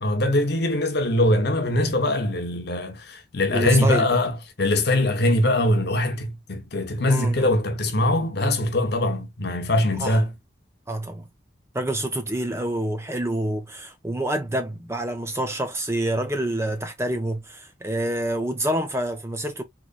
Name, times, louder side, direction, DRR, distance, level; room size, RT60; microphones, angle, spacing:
voice 1, 0.0-10.3, left 1 dB, 55° left, 0.9 m, -22 dB
voice 2, 3.5-4.1 7.1-7.5 10.0-10.2 10.9-11.2 11.7-19.6, right 1 dB, 15° right, 0.6 m, -27 dB
3.9 x 3.0 x 2.3 m
head